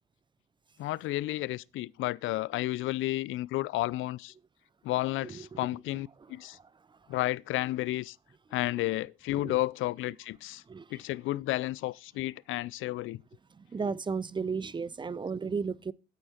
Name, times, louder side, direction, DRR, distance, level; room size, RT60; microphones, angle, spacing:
voice 1, 0.8-4.3 4.8-6.6 7.1-8.2 8.5-10.6 10.9-13.2, left 17 dB, 85° left, 0.4 m, -32 dB
voice 2, 5.2-5.6 6.2-7.0 8.6-8.7 9.3-9.6 10.7-11.0 13.5-15.9, right 5 dB, 25° right, 0.6 m, -35 dB
8.7 x 8.2 x 4.3 m
cardioid pair, 90°, 20 cm